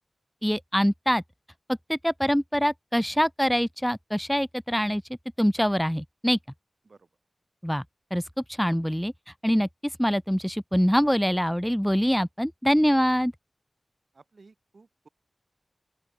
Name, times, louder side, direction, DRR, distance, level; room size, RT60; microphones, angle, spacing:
voice 1, 0.4-1.2 1.9-5.0 5.4-6.4 7.6-7.8 8.1-8.2 8.5-9.1 9.4-13.3, equal, 5° left, 0.3 m, -24 dB
voice 2, 14.1-15.1, right 3 dB, 65° right, 3.5 m, -55 dB
open air
cardioid pair, 50°, 0 cm